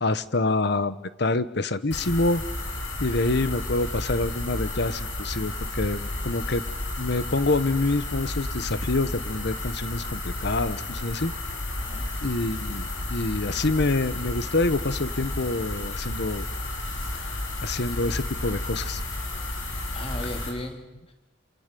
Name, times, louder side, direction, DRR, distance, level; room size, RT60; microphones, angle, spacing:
voice 1, 0.0-2.4 3.0-6.6 7.0-11.3 12.2-16.5 17.6-19.0, left 2 dB, 60° left, 14 dB, 1.1 m, -26 dB
sound 1, 1.9-20.5, left 2 dB, 80° left, 5.6 m, -32 dB
voice 2, 11.8-12.1 19.9-21.1, left 1 dB, 30° left, 4 dB, 3.0 m, -36 dB
28.0 x 26.5 x 6.9 m, 1.1 s
head